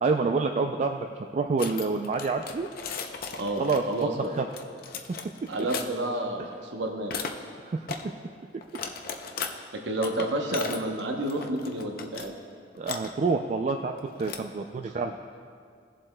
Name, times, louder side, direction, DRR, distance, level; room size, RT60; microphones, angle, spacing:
voice 1, 0.0-2.7 3.6-3.8 4.2-4.4 7.6-7.9 12.8-13.9 14.2-15.2, right 4 dB, 40° right, 4 dB, 0.3 m, -27 dB
sound 1, 1.6-5.8 7.1-7.3 7.9-8.0 8.6-9.5 10.0-12.3 12.6-13.1 14.0-14.6, left 6 dB, 55° left, 0.5 m, -37 dB
voice 2, 3.3-4.3 5.5-7.1 9.7-12.3 14.9-15.0, right 1 dB, 75° right, 2 dB, 0.8 m, -30 dB
16.5 x 7.4 x 2.2 m, 2.1 s
head